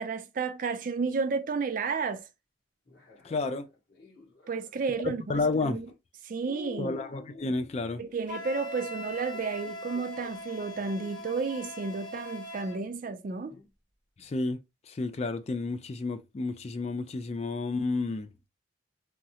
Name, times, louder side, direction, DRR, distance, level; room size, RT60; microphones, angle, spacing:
voice 1, 0.0-2.3 4.5-5.9 6.2-6.9 8.0-13.6, right 4 dB, 45° right, 0.4 m, -32 dB
sound 1, 2.9-4.8 5.6-5.9 6.4-11.1 11.8-11.9 13.5-13.7, left 4 dB, 60° left, 1.5 m, -49 dB
voice 2, 3.2-3.7 5.3-5.8 6.8-8.0 14.2-14.6 14.9-18.3, left 3 dB, 35° left, 0.3 m, -31 dB
Wind instrument woodwind instrument, 8.3-12.8, left 1 dB, 75° left, 1.6 m, -41 dB
3.6 x 2.0 x 2.8 m
head